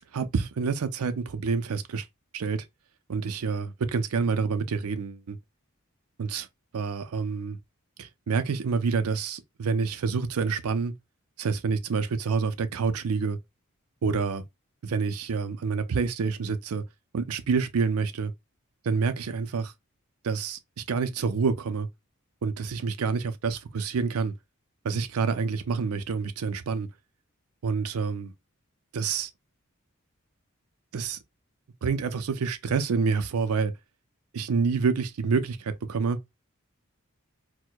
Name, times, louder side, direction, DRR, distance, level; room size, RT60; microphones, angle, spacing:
voice 1, 0.1-2.1 2.3-2.7 3.1-5.4 6.2-6.5 6.7-7.6 8.0-10.9 11.4-13.4 14.0-14.4 14.8-16.8 17.1-18.3 18.8-19.7 20.2-21.9 22.4-24.3 24.8-26.9 27.6-28.3 28.9-29.3 30.9-31.2 31.8-33.7 34.3-36.2, right 5 dB, 85° right, 0.5 m, -27 dB
4.4 x 2.1 x 2.2 m
head